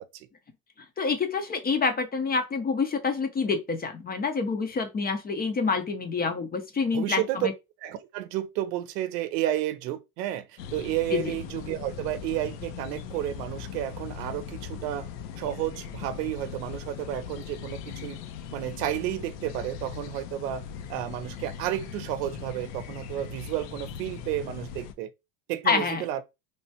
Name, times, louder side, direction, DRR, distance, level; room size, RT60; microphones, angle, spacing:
voice 1, 1.0-7.5 11.1-11.3 25.7-26.2, left 4 dB, 20° left, 0.5 m, -27 dB
voice 2, 6.9-7.5 7.8-15.1 15.4-18.2 18.5-20.6 20.9-25.1 25.5-26.2, right 13 dB, 90° right, 0.6 m, -31 dB
sound 1, 10.6-24.9, left 8 dB, 80° left, 0.7 m, -40 dB
3.3 x 2.2 x 2.7 m
supercardioid pair, 110°, 47 cm